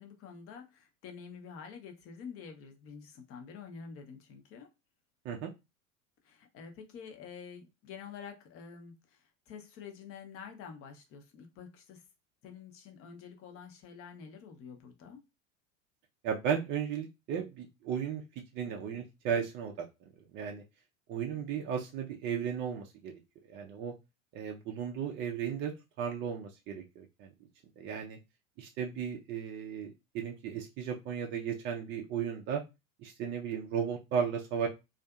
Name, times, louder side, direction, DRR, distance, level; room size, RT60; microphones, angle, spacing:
voice 1, 0.0-4.7 6.2-12.0 12.4-15.2 21.3-21.4, left 6 dB, 35° left, 0.7 m, -48 dB
voice 2, 16.2-18.2 18.5-19.9 20.3-20.6 21.1-23.1 23.5-23.9 24.3-25.7 26.0-27.3 27.8-28.2 28.6-32.6 33.0-34.7, right 7 dB, 30° right, 0.4 m, -35 dB
2.5 x 2.4 x 2.3 m
figure-of-eight pair, 80°, 39 cm